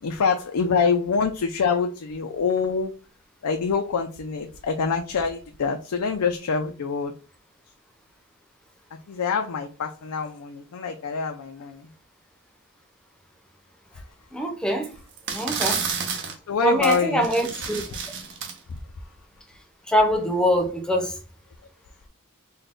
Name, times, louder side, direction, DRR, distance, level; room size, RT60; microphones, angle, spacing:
voice 1, 0.0-2.9 3.4-7.1 9.1-11.9 16.5-17.3 17.9-18.0 18.7-18.8, left 5 dB, 85° left, 0.4 m, -25 dB
voice 2, 14.3-14.9 15.3-15.8 16.6-17.8 19.9-21.2, equal, 5° left, 0.7 m, -23 dB
sound 1, 14.8-14.9 15.2-16.3 16.8-17.0 17.2-18.5, right 6 dB, 55° right, 0.8 m, -30 dB
4.0 x 2.2 x 3.6 m
head